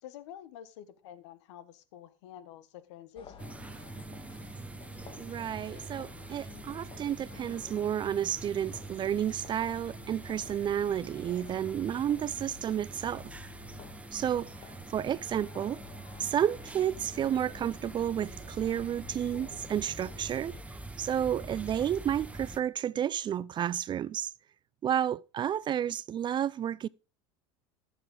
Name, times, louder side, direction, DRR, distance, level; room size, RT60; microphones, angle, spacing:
voice 1, 0.0-3.6, left 10 dB, 75° left, 1.5 m, -49 dB
sound 1, 3.2-20.6, left 7 dB, 35° left, 1.9 m, -51 dB
sound 2, 3.4-22.6, right 2 dB, 10° right, 1.1 m, -45 dB
voice 2, 5.2-13.3 14.1-14.5 14.9-15.8 16.2-20.6 21.0-24.3 24.8-26.9, right 10 dB, 30° right, 0.4 m, -31 dB
14.5 x 7.0 x 3.9 m
hypercardioid pair, 95°, 15 cm